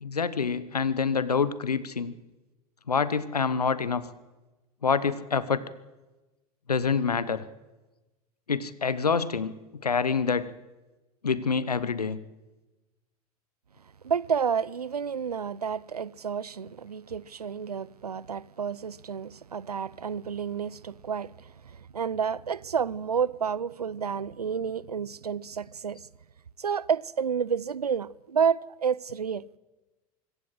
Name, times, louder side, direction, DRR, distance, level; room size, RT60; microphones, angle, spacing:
voice 1, 0.0-2.1 2.9-4.0 4.8-5.6 6.7-7.4 8.5-10.5 11.2-12.2, left 5 dB, 85° left, 1.1 m, -26 dB
voice 2, 14.0-26.0 26.6-29.5, right 7 dB, 85° right, 0.6 m, -30 dB
24.5 x 15.0 x 7.8 m
figure-of-eight pair, 85°, 19 cm